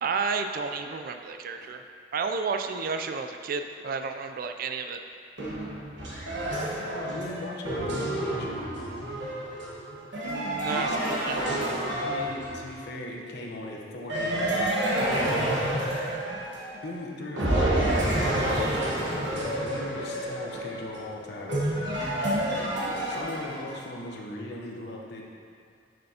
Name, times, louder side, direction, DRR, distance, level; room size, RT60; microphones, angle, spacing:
voice 1, 0.0-1.8 2.1-5.0 10.2-11.4, right 5 dB, 50° right, 6 dB, 0.3 m, -31 dB
sound 1, 5.4-12.8 14.1-16.9 17.4-23.8, right 1 dB, 70° right, 1.4 m, -29 dB
voice 2, 6.9-8.6 10.7-11.6 12.0-14.7 15.1-15.8 16.8-18.1 19.0-21.5 23.1-25.3, left 1 dB, 60° left, -1 dB, 0.9 m, -38 dB
6.8 x 6.4 x 2.8 m, 2.2 s
head